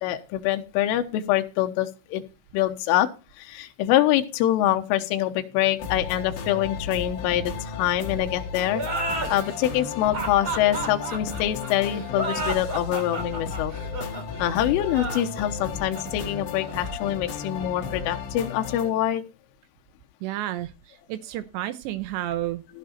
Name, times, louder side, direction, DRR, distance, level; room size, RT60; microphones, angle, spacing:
voice 1, 0.0-2.2 2.5-3.1 3.4-8.8 9.3-13.7 14.4-19.2 22.7-22.8, left 12 dB, 80° left, 7 dB, 3.5 m, -25 dB
sound 1, 5.8-18.9, left 5 dB, 60° left, 4.2 m, -34 dB
sound 2, 8.7-18.0, right 2 dB, 25° right, 2.8 m, -33 dB
voice 2, 20.2-22.8, right 13 dB, 80° right, 13 dB, 2.6 m, -31 dB
16.0 x 6.6 x 4.4 m, 0.30 s
omnidirectional pair, 5.9 m